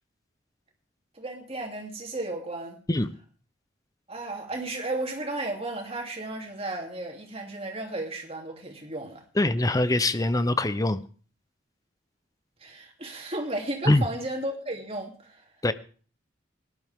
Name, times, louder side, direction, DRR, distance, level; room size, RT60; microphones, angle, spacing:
voice 1, 1.1-2.8 4.1-9.2 12.6-15.4, right 2 dB, 35° right, 1 dB, 3.0 m, -34 dB
voice 2, 9.4-11.0 13.9-14.0 15.6-15.7, left 2 dB, 20° left, 13 dB, 0.7 m, -23 dB
18.5 x 11.5 x 3.6 m, 0.41 s
head